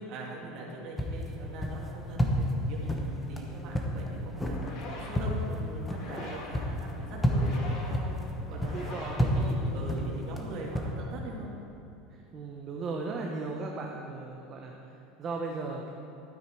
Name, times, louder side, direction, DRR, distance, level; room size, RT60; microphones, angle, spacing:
voice 1, 0.0-11.5, right 2 dB, 45° right, -3 dB, 2.5 m, -42 dB
sound 1, 1.0-10.9, equal, 10° left, 1.1 m, -31 dB
sound 2, 4.3-10.1, left 2 dB, 50° left, 2.3 m, -45 dB
voice 2, 8.5-10.5 12.1-14.7 15.2-15.9, right 3 dB, 30° right, 0 dB, 0.9 m, -37 dB
12.5 x 9.0 x 4.6 m, 2.9 s
supercardioid pair, 155°, 0 cm